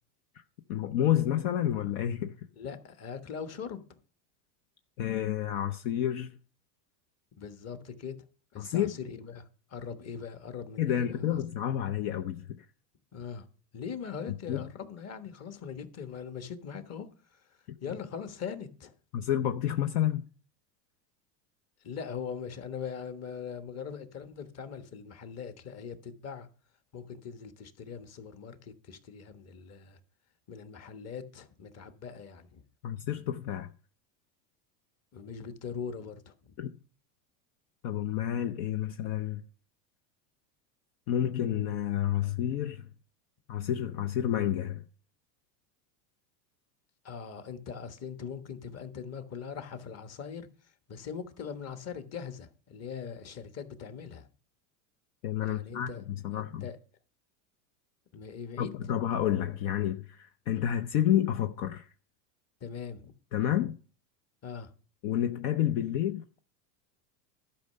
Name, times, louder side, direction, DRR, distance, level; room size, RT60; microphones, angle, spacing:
voice 1, 0.7-2.3 5.0-6.3 8.6-9.0 10.8-12.6 14.5-14.7 19.1-20.2 32.8-33.7 36.6-36.7 37.8-39.4 41.1-42.8 43.5-44.8 55.2-56.7 58.6-61.9 63.3-63.7 65.0-66.2, left 11 dB, 60° left, 0.8 m, -29 dB
voice 2, 2.6-4.0 7.4-8.1 8.5-11.4 13.1-13.5 13.7-17.4 17.8-18.9 21.8-26.5 26.9-30.0 30.5-32.6 35.1-36.5 47.0-50.5 50.9-54.3 55.4-56.0 56.6-56.8 58.1-58.9 62.6-63.1 64.4-64.7, left 6 dB, 30° left, 1.3 m, -41 dB
12.0 x 5.5 x 6.7 m
supercardioid pair, 125°, 49 cm